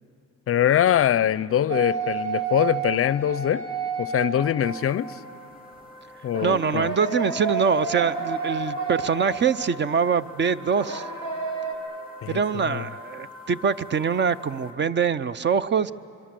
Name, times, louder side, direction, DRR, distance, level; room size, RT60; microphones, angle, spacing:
voice 1, 0.5-3.6 4.0-5.2 6.2-6.9 12.2-12.9, left 10 dB, 50° left, 19 dB, 0.5 m, -23 dB
sound 1, 1.7-5.1 6.3-9.8 10.8-11.7, right 5 dB, 75° right, 4.0 m, -30 dB
sound 2, 4.6-14.7, left 3 dB, 15° right, 4.6 m, -45 dB
voice 2, 6.4-11.1 12.3-15.9, right 6 dB, 40° right, 15 dB, 0.5 m, -24 dB
24.5 x 23.0 x 7.6 m, 2.7 s
cardioid pair, 90°, 30 cm